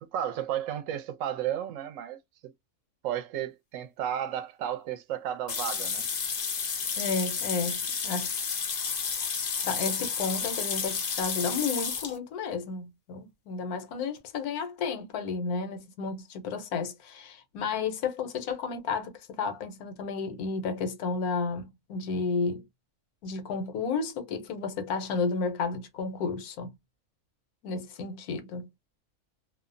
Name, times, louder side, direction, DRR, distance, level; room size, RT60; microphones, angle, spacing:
voice 1, 0.0-2.5 3.0-6.1, right 10 dB, 70° right, 0.9 m, -33 dB
sound 1, 5.5-12.2, left 6 dB, 70° left, 0.4 m, -31 dB
voice 2, 7.0-8.3 9.6-22.6 23.2-26.7 27.6-28.7, left 4 dB, 85° left, 1.2 m, -32 dB
2.7 x 2.0 x 2.5 m
omnidirectional pair, 1.5 m